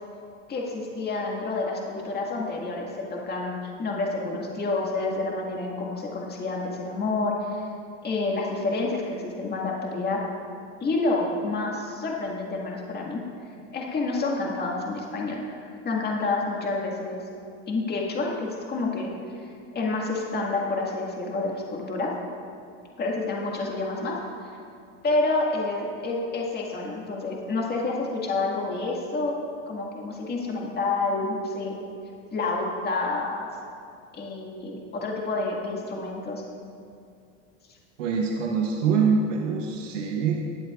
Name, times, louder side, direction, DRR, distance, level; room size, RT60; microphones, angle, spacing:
voice 1, 0.5-7.7 8.0-10.2 10.8-13.3 13.7-15.4 15.8-17.2 17.7-19.1 19.7-22.1 23.0-24.6 25.0-29.4 29.7-31.8 32.3-33.5 34.1-36.4, left 3 dB, 25° left, -2 dB, 1.9 m, -28 dB
voice 2, 38.0-40.3, right 5 dB, 90° right, 0 dB, 1.1 m, -24 dB
20.5 x 7.8 x 2.5 m, 2.5 s
supercardioid pair, 110°, 36 cm